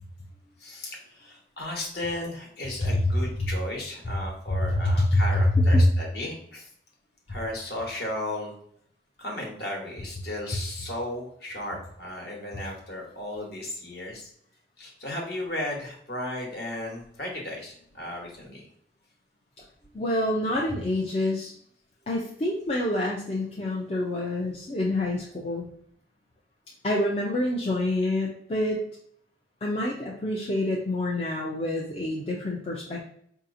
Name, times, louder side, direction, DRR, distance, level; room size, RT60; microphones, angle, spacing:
voice 1, 0.6-6.7 7.3-8.5 9.2-14.3 14.8-18.6, left 1 dB, 55° left, 0 dB, 1.1 m, -35 dB
voice 2, 4.5-5.9 19.9-21.5 22.1-25.7 26.8-28.9 29.6-33.0, left 1 dB, 30° left, -2 dB, 0.4 m, -26 dB
4.7 x 2.8 x 2.5 m, 0.65 s
head